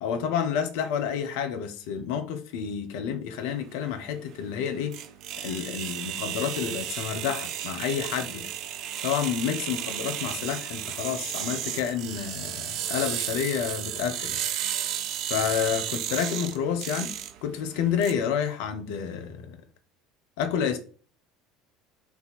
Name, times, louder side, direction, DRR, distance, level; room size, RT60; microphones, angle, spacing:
voice 1, 0.0-4.9 5.4-8.5 9.0-14.4 15.3-17.1 17.4-19.6 20.4-20.8, left 8 dB, 60° left, 0.7 m, -29 dB
sound 1, 3.4-18.1, right 10 dB, 55° right, 0.4 m, -34 dB
4.6 x 2.7 x 4.2 m
figure-of-eight pair, 65°, 0 cm